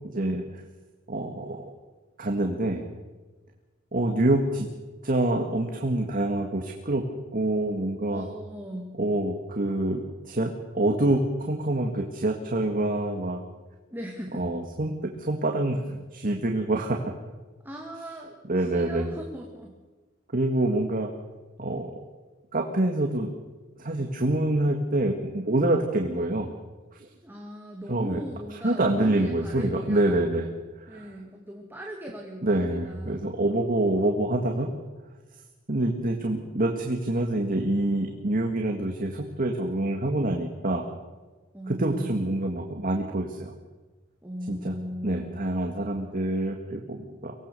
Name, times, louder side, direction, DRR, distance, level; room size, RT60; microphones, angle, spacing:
voice 1, 0.1-0.6 1.1-1.7 2.2-2.9 3.9-4.7 5.0-7.0 7.3-8.3 9.0-13.4 14.3-17.0 18.5-19.1 20.3-21.1 21.6-22.0 22.5-23.3 23.8-26.5 26.9-27.1 27.9-28.2 28.6-30.5 30.8-31.1 32.4-34.7 35.7-40.8 41.7-43.5 44.5-44.8 45.0-47.4, right 1 dB, 45° right, 2 dB, 1.9 m, -26 dB
voice 2, 8.1-9.0 13.9-14.5 17.6-19.7 27.2-30.2 30.9-33.4 41.5-42.2 44.2-45.5, equal, 10° right, 1 dB, 2.2 m, -39 dB
24.5 x 18.5 x 6.9 m, 1.3 s
head